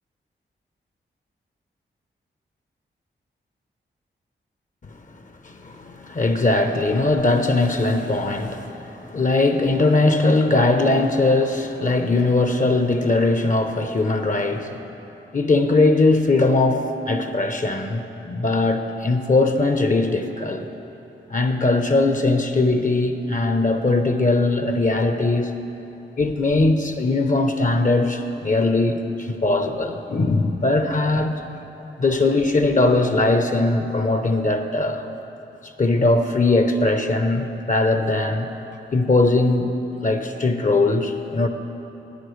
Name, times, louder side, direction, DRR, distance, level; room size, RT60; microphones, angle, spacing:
voice 1, 5.4-14.8 15.3-20.7 21.3-25.5 26.2-31.4 32.0-35.1 35.6-38.5 38.9-39.7 40.0-41.5, left 2 dB, 40° left, 7 dB, 0.8 m, -20 dB
13.0 x 9.9 x 3.2 m, 3.0 s
supercardioid pair, 40°, 21 cm